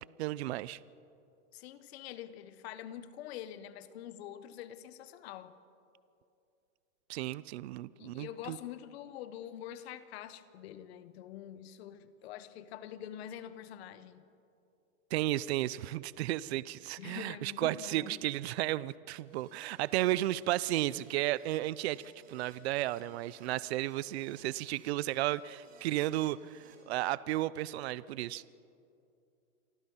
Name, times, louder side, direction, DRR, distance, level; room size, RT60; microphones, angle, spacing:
voice 1, 0.2-0.8 7.1-8.6 15.1-22.0 22.3-28.4, right 15 dB, 50° right, 19 dB, 0.6 m, -33 dB
voice 2, 1.5-5.6 8.0-14.2 17.0-18.2, left 11 dB, 45° left, 13 dB, 1.3 m, -45 dB
Keyboard (musical), 19.3-26.8, right 5 dB, 20° right, 3.9 m, -63 dB
28.0 x 24.0 x 5.7 m, 2.6 s
hypercardioid pair, 155°, 42 cm